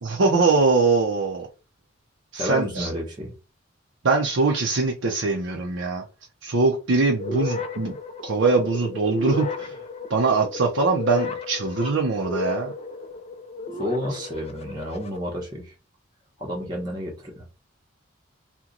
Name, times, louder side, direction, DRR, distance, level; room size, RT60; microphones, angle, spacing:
voice 1, 0.0-1.5 2.3-2.9 4.0-6.0 6.4-7.9 8.2-9.8 10.1-12.7, right 3 dB, 75° right, 0.6 m, -22 dB
voice 2, 2.4-3.3 13.8-15.7 16.4-17.5, equal, 20° right, 0.8 m, -31 dB
sound 1, 7.2-15.2, left 3 dB, 30° left, 0.4 m, -33 dB
2.9 x 2.2 x 3.8 m
head